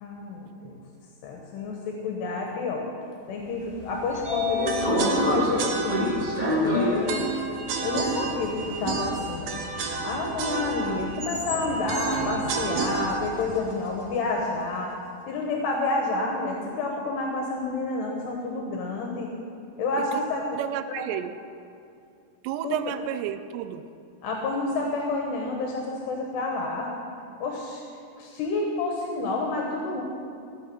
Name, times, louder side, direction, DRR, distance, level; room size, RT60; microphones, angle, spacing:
voice 1, 0.0-0.8 1.2-2.9 3.3-6.3 6.6-7.2 7.8-9.5 10.0-14.9 15.3-19.3 19.8-20.6 20.9-21.0 22.6-22.7 24.2-26.9 27.4-27.8 28.2-30.0, left 3 dB, 80° left, 0 dB, 3.2 m, -29 dB
Sliding door, 3.7-13.8, left 1 dB, 20° right, 1.1 m, -30 dB
sound 1, 4.7-14.7, right 4 dB, 70° right, 2.2 m, -31 dB
voice 2, 20.5-21.3 22.4-23.8, right 11 dB, 85° right, 11 dB, 2.7 m, -31 dB
16.5 x 6.3 x 7.7 m, 2.5 s
omnidirectional pair, 4.8 m